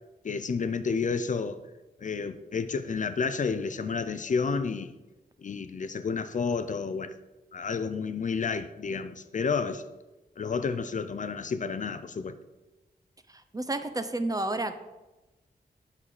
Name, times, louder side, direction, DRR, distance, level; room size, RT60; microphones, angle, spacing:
voice 1, 0.2-1.6 2.0-4.9 5.4-7.1 7.5-9.8 10.4-12.4, left 5 dB, 50° left, 0.5 m, -30 dB
voice 2, 13.3-14.9, right 2 dB, 20° right, 0.6 m, -31 dB
8.7 x 5.5 x 6.6 m
wide cardioid pair, 145°, 17 cm